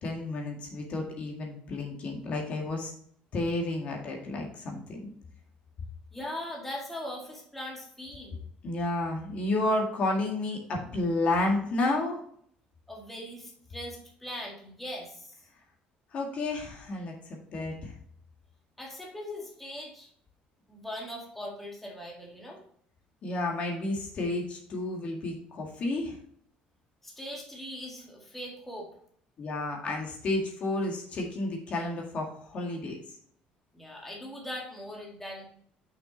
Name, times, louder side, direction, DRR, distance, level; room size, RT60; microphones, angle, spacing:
voice 1, 0.0-2.9 3.3-5.1 8.6-12.2 16.1-17.1 17.5-17.9 23.2-26.1 29.4-33.0, left 2 dB, 45° left, 0 dB, 1.9 m, -31 dB
voice 2, 6.1-8.4 12.9-15.4 18.8-20.1 20.7-22.6 27.0-28.9 33.7-35.5, left 1 dB, 5° left, -2 dB, 1.9 m, -40 dB
6.4 x 6.0 x 4.0 m, 0.62 s
cardioid pair, 145°, 3 cm